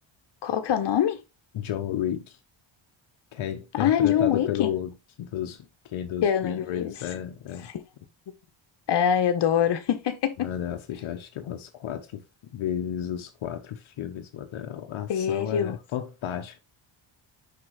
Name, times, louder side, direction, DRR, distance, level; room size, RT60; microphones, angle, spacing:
voice 1, 0.4-1.2 3.7-4.7 6.2-7.0 7.6-7.7 8.9-10.5 15.1-15.8, left 9 dB, 55° left, 1.2 m, -24 dB
voice 2, 1.5-2.4 3.3-4.9 5.2-7.7 10.4-12.2 12.5-16.6, left 10 dB, 80° left, 1.1 m, -32 dB
6.3 x 5.6 x 3.2 m
cardioid pair, 140°, 48 cm